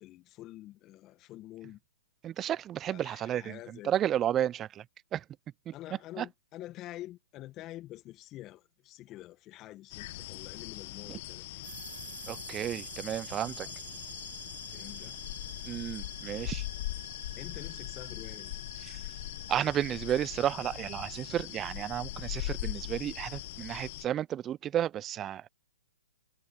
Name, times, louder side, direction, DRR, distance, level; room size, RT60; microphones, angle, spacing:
voice 1, 0.0-1.8 2.9-4.0 5.7-11.6 13.6-13.8 14.7-15.2 17.4-18.5, left 15 dB, 25° left, 1.6 m, -47 dB
voice 2, 2.2-4.8 5.1-5.2 5.7-5.8 6.2-6.3 11.1-11.2 12.3-13.7 15.7-16.7 18.9-19.0 19.5-25.5, right 11 dB, 20° right, 0.4 m, -32 dB
sound 1, 9.9-24.0, left 17 dB, 45° left, 0.9 m, -41 dB
sound 2, 11.6-23.9, right 8 dB, 70° right, 2.5 m, -50 dB
hypercardioid pair, 135°, 0 cm